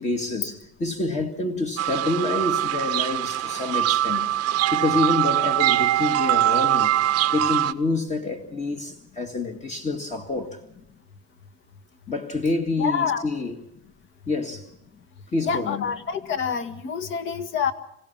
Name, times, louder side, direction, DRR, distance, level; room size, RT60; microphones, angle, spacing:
voice 1, 0.0-6.9 7.3-10.6 12.1-13.6 14.3-14.7 15.3-15.9, left 3 dB, 25° left, 2.1 m, -27 dB
sound 1, 1.8-7.7, right 13 dB, 50° right, 0.8 m, -22 dB
voice 2, 12.8-13.2 15.4-17.7, left 6 dB, 40° left, 1.9 m, -27 dB
26.5 x 17.0 x 7.4 m
cardioid pair, 135°, 30 cm